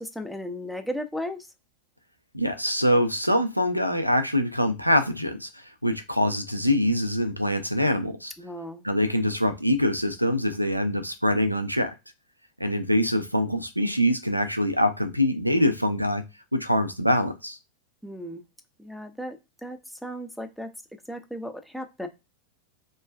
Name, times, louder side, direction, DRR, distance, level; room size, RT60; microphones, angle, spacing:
voice 1, 0.0-1.5 8.4-8.8 18.0-18.4 18.8-20.7 21.1-22.1, equal, ahead, 5 dB, 0.4 m, -35 dB
voice 2, 2.3-8.3 8.8-11.9 12.6-16.2 16.5-17.6, equal, 90° right, 8 dB, 0.4 m, -24 dB
3.1 x 2.2 x 2.2 m, 0.26 s
figure-of-eight pair, 90°, 0 cm